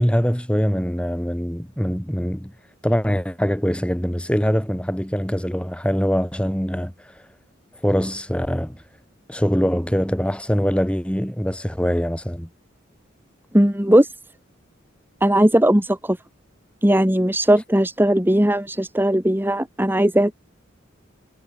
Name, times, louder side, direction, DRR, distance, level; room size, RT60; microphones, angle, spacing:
voice 1, 0.0-2.5 2.8-6.9 7.8-8.8 9.3-12.5, equal, 5° left, 4.7 m, -23 dB
voice 2, 13.5-14.1 15.2-16.2 16.8-20.3, right 1 dB, 10° right, 2.1 m, -18 dB
head